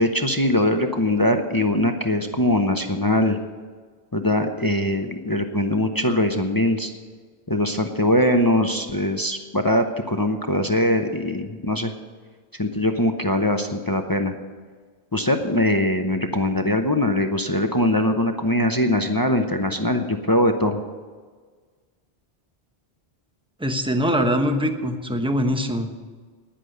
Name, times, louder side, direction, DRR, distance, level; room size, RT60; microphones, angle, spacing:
voice 1, 0.0-3.4 4.1-6.9 7.5-11.9 12.5-14.3 15.1-20.8, left 1 dB, 20° left, 5 dB, 0.8 m, -22 dB
voice 2, 23.6-25.9, equal, 5° right, 5 dB, 1.0 m, -22 dB
10.5 x 10.0 x 7.8 m, 1.5 s
omnidirectional pair, 1.1 m